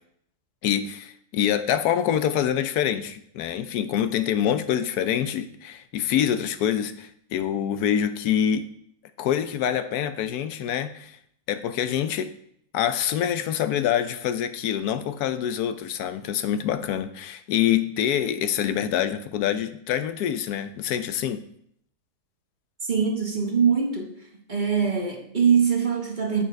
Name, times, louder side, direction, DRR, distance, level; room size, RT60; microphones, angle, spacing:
voice 1, 0.6-8.7 9.2-11.2 11.5-12.3 12.7-21.4, left 9 dB, 80° left, 1.1 m, -25 dB
voice 2, 22.8-24.1 24.5-26.4, right 6 dB, 35° right, 1.0 m, -23 dB
7.5 x 6.5 x 4.7 m
omnidirectional pair, 1.6 m